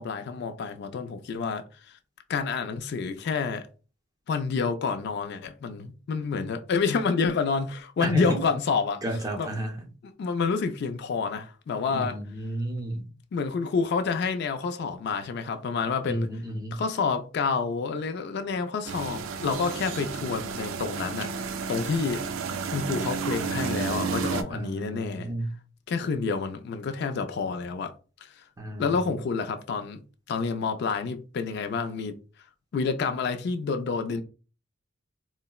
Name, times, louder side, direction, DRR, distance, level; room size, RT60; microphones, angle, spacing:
voice 1, 0.0-1.6 2.3-3.7 4.3-9.0 9.4-9.5 10.2-12.2 13.3-16.3 16.7-22.2 22.7-25.3 25.9-27.9 28.2-28.4 28.8-30.0 30.3-32.1 32.7-34.2, left 5 dB, 55° left, 0.3 m, -28 dB
voice 2, 8.0-8.4 9.0-9.9 11.9-13.1 16.1-16.8 24.5-25.5 28.6-29.2, right 1 dB, 20° right, 0.5 m, -32 dB
sound 1, 18.8-24.4, right 6 dB, 75° right, 0.3 m, -32 dB
3.8 x 2.0 x 2.2 m
head